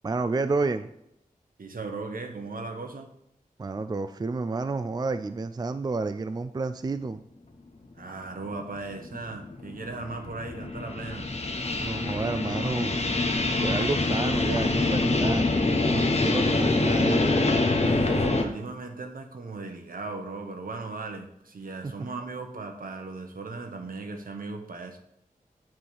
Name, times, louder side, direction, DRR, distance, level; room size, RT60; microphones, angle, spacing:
voice 1, 0.0-0.9 3.6-7.2 11.8-13.0 13.6-17.4 21.8-21.9, right 3 dB, 25° right, 10 dB, 0.3 m, -30 dB
voice 2, 1.6-3.1 8.0-11.3 17.8-25.0, right 3 dB, 70° right, 5 dB, 1.1 m, -37 dB
sound 1, 8.1-8.2 8.8-18.4, left 2 dB, 45° left, 1.0 m, -25 dB
7.6 x 3.6 x 6.3 m, 0.78 s
wide cardioid pair, 65°, 15 cm